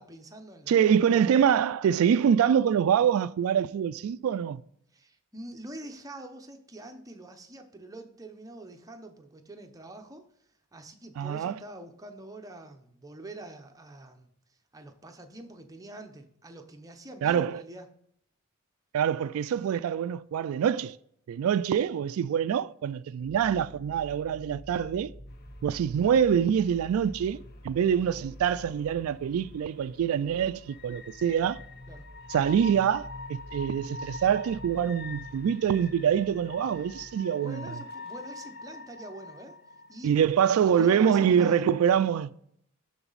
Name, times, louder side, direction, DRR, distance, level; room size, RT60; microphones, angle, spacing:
voice 1, 0.0-0.8 4.9-10.3 10.7-14.3 14.7-17.9 31.9-32.1 37.4-39.6 39.9-41.6, right 1 dB, 15° right, 0.8 m, -45 dB
voice 2, 0.7-4.6 11.2-11.5 17.2-17.6 18.9-21.0 21.3-25.1 25.6-27.4 27.6-31.6 32.3-37.6 40.0-42.3, right 8 dB, 75° right, 0.3 m, -25 dB
sound 1, 23.2-37.2, left 1 dB, 15° left, 0.5 m, -47 dB
sound 2, 25.3-41.2, left 3 dB, 50° left, 0.8 m, -46 dB
12.0 x 3.9 x 4.0 m
head